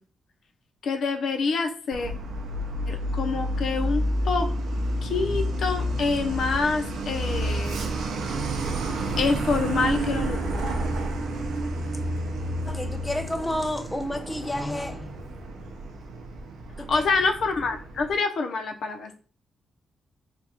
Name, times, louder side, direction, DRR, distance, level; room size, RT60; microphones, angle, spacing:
voice 1, 0.8-2.1 2.9-4.5 5.0-7.8 9.2-10.7 16.9-19.1, left 4 dB, 65° left, 5 dB, 0.7 m, -26 dB
Truck, 1.9-18.1, right 1 dB, 85° right, 0.6 m, -30 dB
voice 2, 12.6-15.4 16.8-17.1, left 1 dB, 10° left, 6 dB, 0.3 m, -31 dB
3.5 x 2.3 x 4.2 m, 0.39 s
cardioid pair, 130°, 0 cm